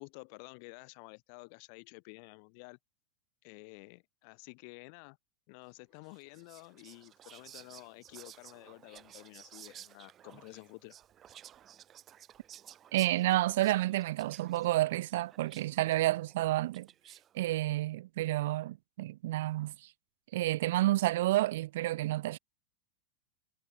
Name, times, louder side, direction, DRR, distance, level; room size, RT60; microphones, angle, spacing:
voice 1, 0.0-2.8 3.4-5.2 5.5-10.9, left 39 dB, 45° left, 3.1 m, -51 dB
Whispering, 6.0-17.4, right 10 dB, 30° right, 2.0 m, -55 dB
voice 2, 12.9-16.9 17.3-19.9 20.3-22.4, right 16 dB, 55° right, 1.0 m, -30 dB
figure-of-eight pair, 90°, 0 cm